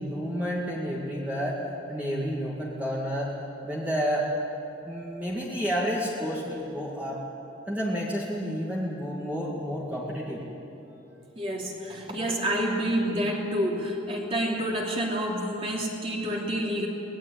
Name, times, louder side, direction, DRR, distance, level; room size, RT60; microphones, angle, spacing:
voice 1, 0.0-1.6 1.9-3.3 3.6-4.3 4.8-7.2 7.7-10.4, equal, 10° right, -5 dB, 2.2 m, -30 dB
voice 2, 11.4-16.9, equal, 30° right, -2 dB, 3.1 m, -28 dB
23.5 x 19.0 x 8.9 m, 3.0 s
head